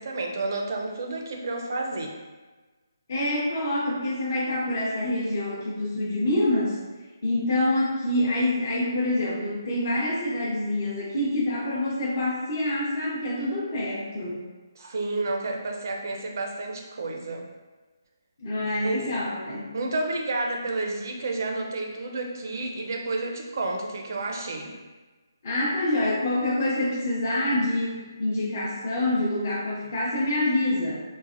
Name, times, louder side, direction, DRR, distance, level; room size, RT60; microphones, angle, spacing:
voice 1, 0.0-2.1 14.8-17.5 18.8-19.0 19.7-24.8, right 2 dB, 50° right, 1 dB, 0.4 m, -30 dB
voice 2, 3.1-6.8 7.2-14.4 18.4-19.7 25.4-31.0, left 1 dB, 40° left, -6 dB, 0.7 m, -26 dB
3.2 x 2.1 x 2.4 m, 1.3 s
hypercardioid pair, 165°, 2 cm